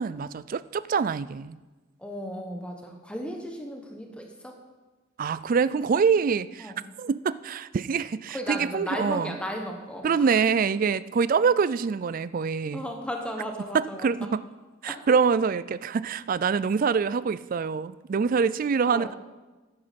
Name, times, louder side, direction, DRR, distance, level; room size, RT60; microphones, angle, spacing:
voice 1, 0.0-1.6 5.2-9.4 10.0-12.8 13.7-14.4 14.8-19.1, right 5 dB, 40° right, 17 dB, 0.3 m, -25 dB
voice 2, 2.0-4.6 6.6-6.8 8.3-10.3 12.7-14.3 14.9-15.0 18.9-19.2, equal, 5° left, 2 dB, 1.1 m, -35 dB
11.5 x 9.7 x 5.2 m, 1.2 s
head